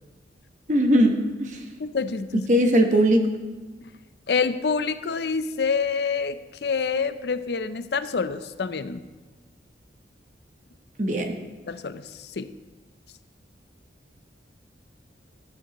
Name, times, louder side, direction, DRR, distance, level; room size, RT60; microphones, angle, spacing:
voice 1, 0.7-1.6 2.5-3.2 11.0-11.4, equal, 45° right, 4 dB, 1.1 m, -20 dB
voice 2, 1.8-2.5 3.8-3.9 4.3-9.0 11.7-12.5, left 5 dB, 65° left, 12 dB, 0.5 m, -27 dB
13.5 x 11.5 x 3.0 m, 1.2 s
head